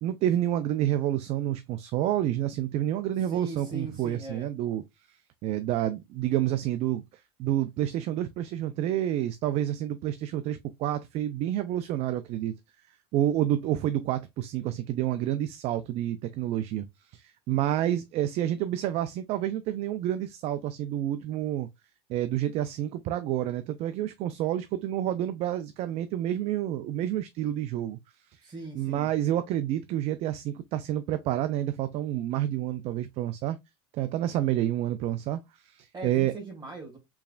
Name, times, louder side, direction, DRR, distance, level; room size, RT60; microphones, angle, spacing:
voice 1, 0.0-4.8 5.4-12.5 13.1-16.9 17.1-21.7 22.1-28.0 28.3-28.4 28.7-33.6 33.9-36.3, right 12 dB, 55° right, 0.4 m, -29 dB
voice 2, 3.2-4.5 28.4-29.1 35.9-37.0, right 3 dB, 30° right, 2.0 m, -40 dB
4.6 x 3.2 x 2.3 m
supercardioid pair, 105°, 13 cm